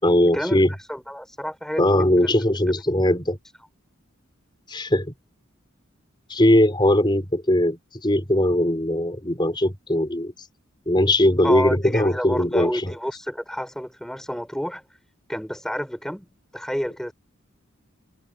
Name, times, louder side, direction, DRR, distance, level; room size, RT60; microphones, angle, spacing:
voice 1, 0.0-0.7 1.8-3.4 4.7-5.1 6.3-10.3 10.9-12.9, left 1 dB, 20° left, 4.1 m, -20 dB
voice 2, 0.9-1.8 2.2-2.3 11.4-14.8 15.3-16.3 16.5-17.1, equal, ahead, 4.6 m, -29 dB
head